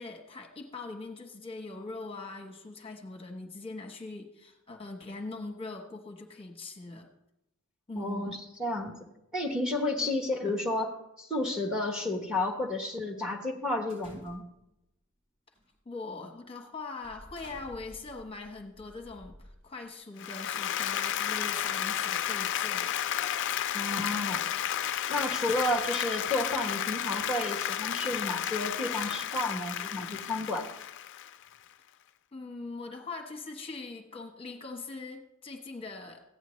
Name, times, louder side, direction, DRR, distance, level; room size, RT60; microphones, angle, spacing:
voice 1, 0.0-7.1 7.9-8.4 10.0-10.2 15.8-22.9 24.2-24.3 32.3-36.2, left 3 dB, 25° left, 2 dB, 1.0 m, -42 dB
voice 2, 8.0-8.3 8.6-8.9 9.3-14.4 23.7-24.5 25.1-30.7, left 2 dB, 5° right, 2 dB, 1.1 m, -31 dB
sound 1, 13.9-14.7 15.5-15.8 16.2-16.4 17.0-19.9, equal, 35° right, 4.0 m, -53 dB
Applause, 20.2-31.5, left 10 dB, 55° left, 0.4 m, -32 dB
15.0 x 9.1 x 3.1 m, 0.88 s
head